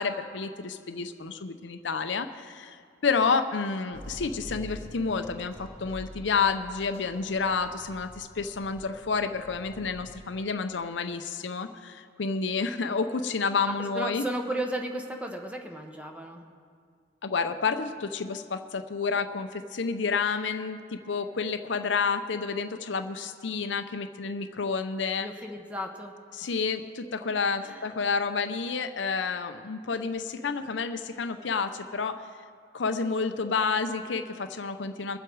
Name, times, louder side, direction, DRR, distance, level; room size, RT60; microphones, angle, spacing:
voice 1, 0.0-14.3 17.2-25.3 26.3-32.2 32.7-35.2, left 5 dB, 75° left, 8 dB, 0.6 m, -30 dB
sound 1, 3.9-10.2, equal, 40° right, 3.7 m, -46 dB
voice 2, 13.6-16.4 25.2-26.1 26.4-26.5 27.6-27.9, right 1 dB, 5° right, 3 dB, 1.0 m, -35 dB
23.0 x 7.8 x 4.7 m, 2.1 s
head